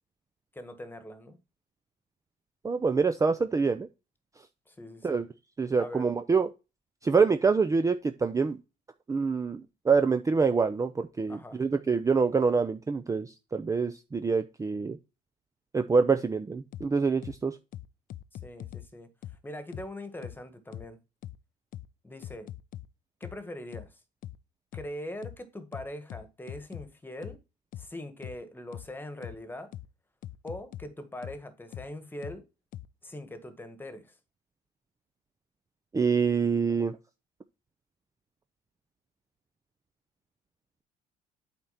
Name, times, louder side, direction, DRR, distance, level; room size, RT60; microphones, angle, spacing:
voice 1, 0.5-1.4 4.7-5.3 5.8-6.1 11.3-11.6 18.4-19.1 19.4-21.0 22.0-22.5 23.2-24.0 24.7-27.4 27.8-29.7 30.4-32.4 33.0-34.1, left 1 dB, 10° left, 1.5 m, -42 dB
voice 2, 2.6-3.9 5.0-5.3 5.6-6.5 7.0-8.6 9.1-15.0 15.7-17.6 35.9-37.0, right 5 dB, 20° right, 0.6 m, -26 dB
sound 1, 16.7-16.9 17.2-17.4 17.7-18.9 19.2-19.4 19.7-19.9 20.2-20.4 20.7-20.9 21.2-21.4 21.7-21.9 22.2-22.9 23.2-23.4 23.7-23.9 24.2-24.4 24.7-24.9 25.2-25.4 25.7-26.9 27.2-27.4 27.7-27.9 28.2-28.4 28.7-28.9 29.2-29.4 29.7-29.9 30.2-30.9 31.2-31.4 31.7-31.9 32.2-32.4 32.7-32.9, left 12 dB, 55° left, 0.5 m, -41 dB
8.3 x 4.5 x 4.1 m
cardioid pair, 110°, 17 cm